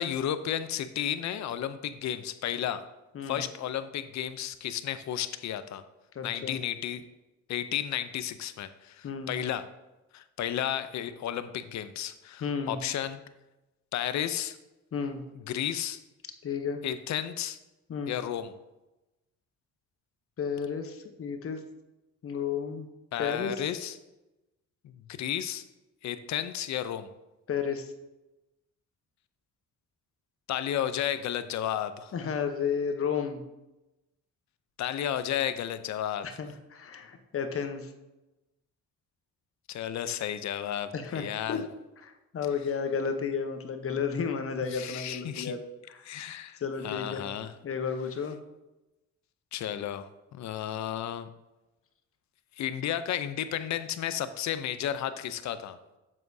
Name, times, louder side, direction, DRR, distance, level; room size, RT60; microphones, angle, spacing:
voice 1, 0.0-2.8 3.3-5.8 6.2-7.0 7.5-9.6 10.1-13.2 13.9-14.6 15.5-16.0 16.8-17.6 18.1-18.5 23.1-24.0 24.8-25.6 26.0-27.1 30.5-32.1 34.8-36.3 39.7-41.6 44.7-45.5 46.1-47.5 49.5-51.3 52.6-55.8, left 10 dB, 65° left, 12 dB, 0.6 m, -33 dB
voice 2, 6.1-6.6 9.0-9.3 12.4-12.8 14.9-15.2 16.4-16.9 17.9-18.2 20.4-21.6 22.2-22.9 23.2-23.5 27.5-27.9 32.1-33.4 36.2-37.9 40.9-41.7 42.0-45.6 45.9-46.2 46.6-47.3 47.6-48.4, left 6 dB, 45° left, 7 dB, 0.9 m, -32 dB
7.7 x 7.6 x 2.7 m, 1.0 s
cardioid pair, 90°, 30 cm